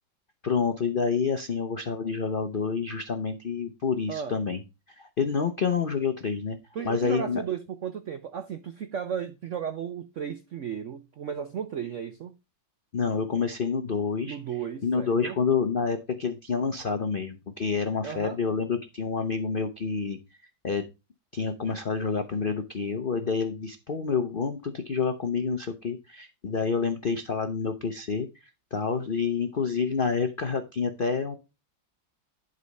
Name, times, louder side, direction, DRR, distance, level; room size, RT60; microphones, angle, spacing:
voice 1, 0.4-4.6 5.0-6.6 6.8-7.4 12.9-14.4 14.8-20.2 20.6-20.8 21.3-28.3 28.7-31.3, left 5 dB, 90° left, 0.4 m, -28 dB
voice 2, 6.7-12.3 14.2-15.4 18.0-18.4, right 8 dB, 80° right, 0.6 m, -34 dB
11.5 x 4.0 x 5.3 m
omnidirectional pair, 2.1 m